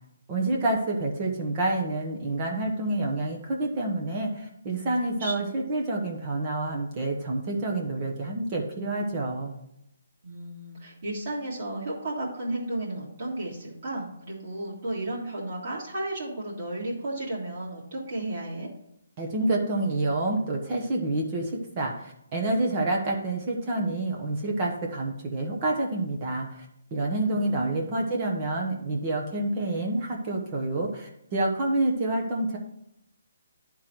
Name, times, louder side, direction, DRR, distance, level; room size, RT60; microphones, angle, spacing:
voice 1, 0.3-9.5 19.2-26.7 26.9-32.6, right 2 dB, 25° right, 0 dB, 0.9 m, -28 dB
voice 2, 4.8-5.3 10.2-18.7 27.2-27.9, right 1 dB, 45° right, -6 dB, 2.2 m, -34 dB
10.0 x 3.8 x 4.5 m, 0.78 s
hypercardioid pair, 170°, 0 cm